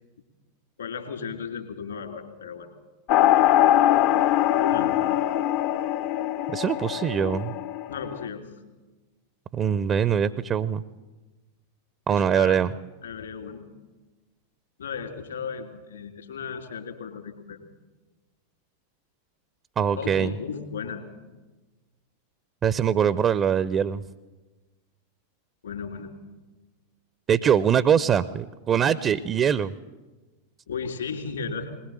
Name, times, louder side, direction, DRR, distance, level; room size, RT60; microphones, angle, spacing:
voice 1, 0.8-2.7 4.6-5.0 7.9-8.5 12.1-12.6 13.0-13.6 14.8-17.6 19.9-21.1 25.6-26.1 30.7-31.8, left 6 dB, 70° left, 5 dB, 3.3 m, -35 dB
sound 1, 3.1-8.3, left 12 dB, 45° left, 0.7 m, -22 dB
voice 2, 6.5-7.5 9.5-10.8 12.1-12.7 19.8-20.3 22.6-24.0 27.3-29.7, right 8 dB, 25° right, 17 dB, 0.6 m, -23 dB
21.0 x 20.5 x 7.6 m, 1.2 s
figure-of-eight pair, 90°, 0 cm